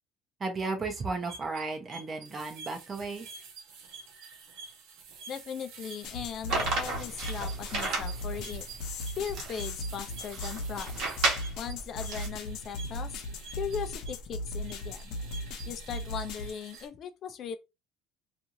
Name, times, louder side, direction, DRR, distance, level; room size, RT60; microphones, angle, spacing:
voice 1, 0.4-3.3, right 3 dB, 25° right, 0.7 m, -34 dB
sound 1, 1.0-16.9, right 4 dB, 85° right, 0.8 m, -48 dB
voice 2, 5.3-8.7 9.2-10.9 11.6-13.2 13.6-15.2 15.7-17.6, left 8 dB, 40° left, 0.4 m, -38 dB
sound 2, 6.0-16.5, left 1 dB, 65° left, 0.7 m, -38 dB
sound 3, 6.5-12.3, right 3 dB, 65° right, 1.0 m, -33 dB
2.5 x 2.4 x 2.9 m
cardioid pair, 155°, 0 cm